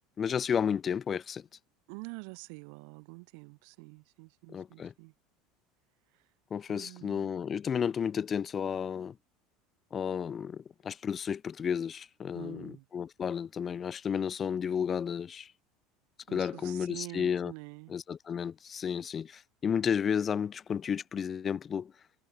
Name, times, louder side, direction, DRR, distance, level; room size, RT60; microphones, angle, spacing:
voice 1, 0.2-1.5 4.5-4.9 6.5-9.2 9.9-15.5 16.3-17.5 17.9-21.9, left 7 dB, 35° left, 0.5 m, -32 dB
voice 2, 1.9-5.1 6.1-6.3 6.7-7.3 12.3-12.9 16.3-17.9, right 40 dB or more, 70° right, 3.8 m, -46 dB
hypercardioid pair, 80°, 0 cm